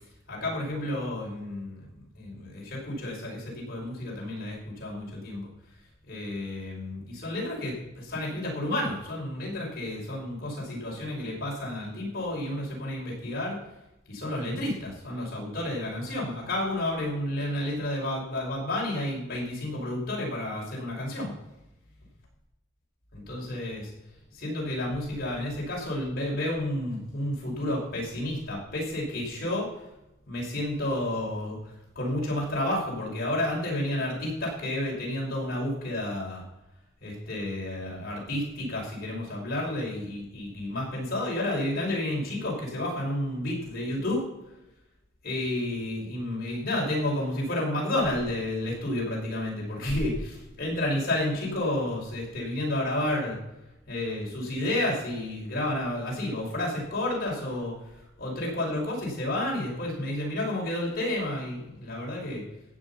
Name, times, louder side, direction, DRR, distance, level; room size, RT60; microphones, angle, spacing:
voice 1, 0.3-1.9 2.1-5.5 6.1-13.6 14.1-21.3 23.1-23.9 24.3-29.7 30.3-36.4 37.0-44.2 45.2-53.4 53.9-62.4, left 1 dB, 50° left, -3 dB, 5.7 m, -31 dB
14.5 x 9.4 x 5.8 m, 0.92 s
head